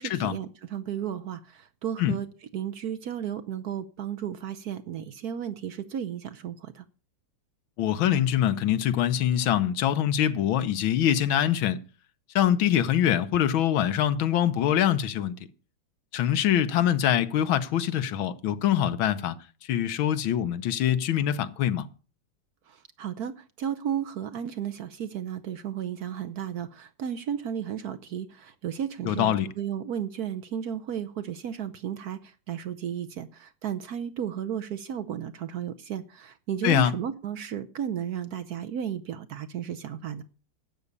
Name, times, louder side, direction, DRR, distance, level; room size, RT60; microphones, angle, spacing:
voice 1, 0.0-2.3 2.5-6.8 22.7-40.2, right 9 dB, 65° right, 1.0 m, -34 dB
voice 2, 7.8-11.8 12.3-15.3 16.1-19.4 19.7-21.9 29.0-29.5 36.6-36.9, left 10 dB, 80° left, 1.7 m, -24 dB
12.0 x 8.5 x 6.8 m
omnidirectional pair, 2.2 m